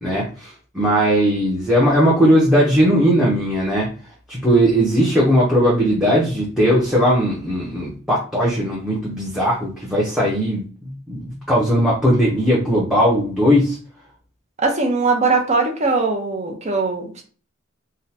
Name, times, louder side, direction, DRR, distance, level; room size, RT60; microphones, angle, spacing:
voice 1, 0.0-3.9 4.3-13.8, equal, ahead, -7 dB, 0.7 m, -18 dB
voice 2, 14.6-17.2, right 3 dB, 35° right, 2 dB, 0.7 m, -20 dB
3.6 x 2.2 x 2.8 m, 0.40 s
head